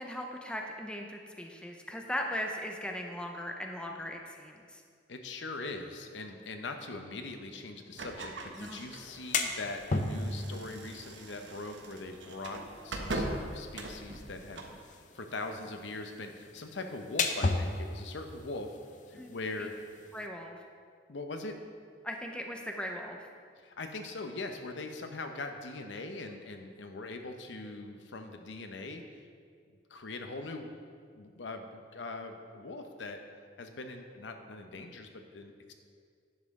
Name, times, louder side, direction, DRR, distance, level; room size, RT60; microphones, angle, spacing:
voice 1, 0.0-4.8 8.6-8.8 19.2-19.3 19.6-19.7 20.1-20.6 22.0-23.3, equal, 5° left, 2 dB, 0.6 m, -38 dB
voice 2, 5.1-18.8 19.1-19.7 21.1-21.6 23.6-29.0 29.9-30.7 31.1-33.2 33.6-35.7, left 3 dB, 75° left, 5 dB, 0.8 m, -41 dB
sound 1, 7.9-14.8, right 2 dB, 80° right, 0.9 m, -41 dB
sound 2, 9.0-20.3, left 3 dB, 45° left, 0.6 m, -37 dB
10.5 x 7.3 x 3.7 m, 2.1 s
head